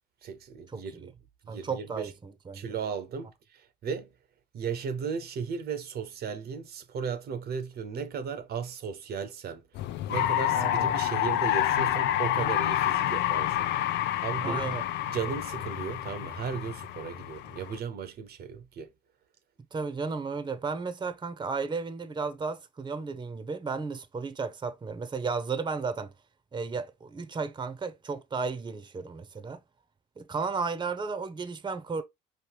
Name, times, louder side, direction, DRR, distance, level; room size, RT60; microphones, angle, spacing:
voice 1, 0.2-1.1 1.4-2.1 2.5-4.1 4.5-9.6 10.1-14.7 15.1-18.9, right 6 dB, 55° right, 0.7 m, -36 dB
voice 2, 1.5-2.6 10.5-11.0 14.4-14.8 19.7-26.1 26.5-29.6 30.2-32.0, right 4 dB, 25° right, 0.7 m, -34 dB
sound 1, 9.8-17.8, left 13 dB, 65° left, 0.4 m, -28 dB
5.0 x 3.1 x 3.3 m
hypercardioid pair, 60°, 20 cm